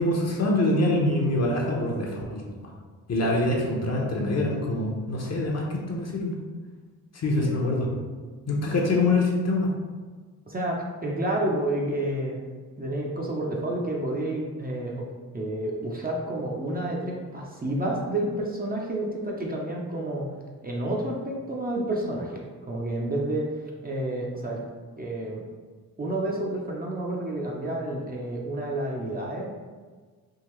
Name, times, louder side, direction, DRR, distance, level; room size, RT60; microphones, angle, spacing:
voice 1, 0.0-2.4 3.1-6.4 7.1-7.9 8.5-9.7, left 2 dB, 40° left, -1 dB, 0.8 m, -25 dB
voice 2, 10.5-12.4 12.8-15.1 15.3-20.3 20.6-23.5 23.8-24.6 25.0-25.4 26.0-29.5, right 1 dB, 25° right, -2 dB, 0.6 m, -30 dB
3.7 x 2.4 x 3.0 m, 1.5 s
cardioid pair, 70°, 39 cm